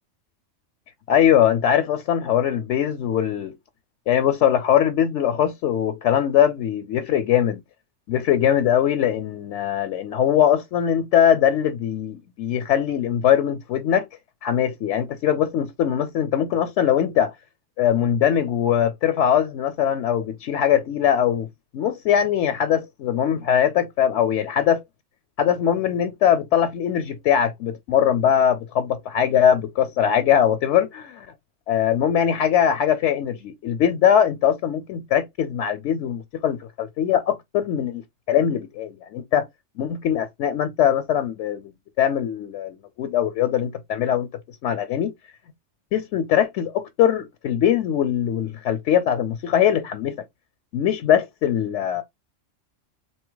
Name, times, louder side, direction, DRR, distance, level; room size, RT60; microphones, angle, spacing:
voice 1, 1.1-3.5 4.1-7.6 8.1-14.1 14.4-17.3 17.8-21.5 21.7-24.8 25.4-31.2 31.7-38.0 38.3-39.4 39.8-41.7 42.0-44.3 44.6-45.1 45.9-50.1 50.7-52.0, left 9 dB, 75° left, 0.9 m, -21 dB
3.9 x 2.7 x 3.7 m
omnidirectional pair, 1.2 m